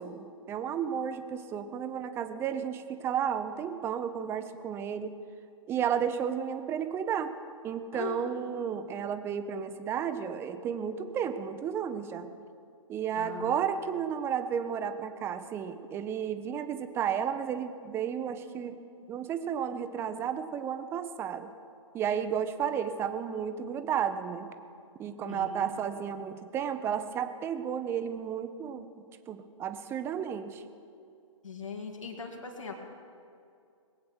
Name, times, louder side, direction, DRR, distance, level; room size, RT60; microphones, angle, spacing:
voice 1, 0.0-5.2 5.7-7.3 7.6-12.3 12.9-18.8 19.1-21.5 21.9-24.5 25.0-28.9 29.3-30.6, right 8 dB, 15° right, 10 dB, 0.7 m, -33 dB
voice 2, 7.9-8.3 13.1-13.6 25.2-25.7 31.4-32.7, left 5 dB, 70° left, 1 dB, 2.5 m, -40 dB
21.5 x 8.6 x 6.2 m, 2.4 s
figure-of-eight pair, 125°, 17 cm